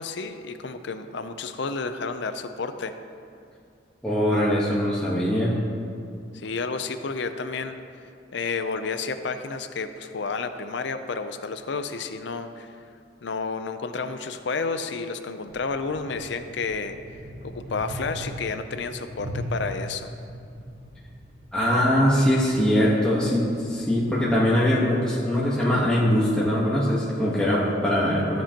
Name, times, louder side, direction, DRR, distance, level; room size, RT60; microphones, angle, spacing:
voice 1, 0.0-2.9 6.3-7.8 8.3-12.7 13.2-17.0 17.4-20.1, left 4 dB, 65° left, 9 dB, 0.5 m, -31 dB
voice 2, 4.0-5.5 21.5-28.4, equal, 5° left, -8 dB, 1.2 m, -22 dB
sound 1, 15.4-24.3, equal, 50° right, 2.1 m, -39 dB
15.5 x 7.3 x 2.9 m, 2.4 s
head